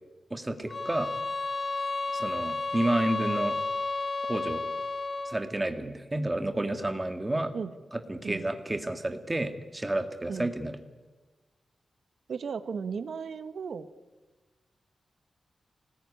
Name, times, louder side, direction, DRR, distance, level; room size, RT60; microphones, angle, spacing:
voice 1, 0.3-1.1 2.1-3.6 4.3-4.6 5.2-7.5 7.9-10.8, right 1 dB, 15° right, 7 dB, 1.8 m, -30 dB
sound 1, 0.7-5.5, left 3 dB, 40° left, 1.3 m, -32 dB
voice 2, 12.3-13.9, right 6 dB, 70° right, 11 dB, 1.3 m, -35 dB
25.5 x 19.5 x 9.8 m, 1.2 s
wide cardioid pair, 165°, 0 cm